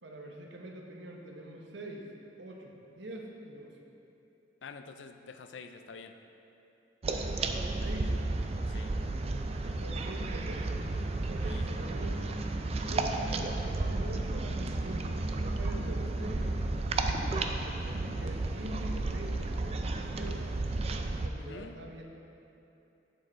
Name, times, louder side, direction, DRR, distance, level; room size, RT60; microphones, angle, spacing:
voice 1, 0.0-2.1 2.4-3.8 7.6-8.3 9.6-10.9 11.2-12.3 12.8-16.5 17.2-20.5 21.1-22.0, right 1 dB, 85° right, 0 dB, 1.0 m, -44 dB
voice 2, 4.6-6.1 8.7-8.9 11.5-11.6 21.4-21.8, left 5 dB, 85° left, 7 dB, 0.5 m, -47 dB
sound 1, 7.0-21.3, right 2 dB, 35° right, 0.4 m, -32 dB
7.0 x 6.6 x 4.4 m, 2.9 s
head